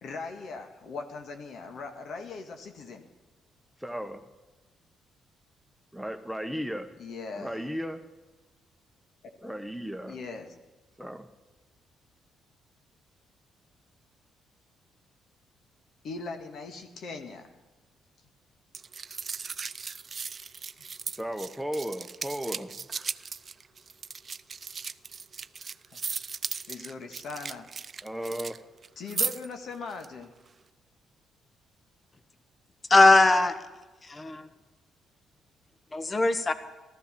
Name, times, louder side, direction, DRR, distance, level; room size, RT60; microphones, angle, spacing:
voice 1, 0.0-3.1 7.0-7.6 10.1-10.5 16.0-17.5 25.9-26.0 26.7-27.7 29.0-30.3, left 4 dB, 65° left, 5 dB, 1.9 m, -39 dB
voice 2, 3.8-4.2 5.9-6.9 7.4-8.0 9.4-10.2 11.0-11.3 21.1-22.9 28.0-28.6, equal, ahead, 7 dB, 1.3 m, -35 dB
sound 1, 18.7-28.6 28.8-29.5 29.9-30.1, right 5 dB, 45° right, 0.5 m, -36 dB
voice 3, 32.9-33.6 34.0-34.5 35.9-36.5, left 2 dB, 30° left, 10 dB, 1.5 m, -20 dB
14.5 x 13.5 x 6.9 m, 1.2 s
hypercardioid pair, 50°, 0 cm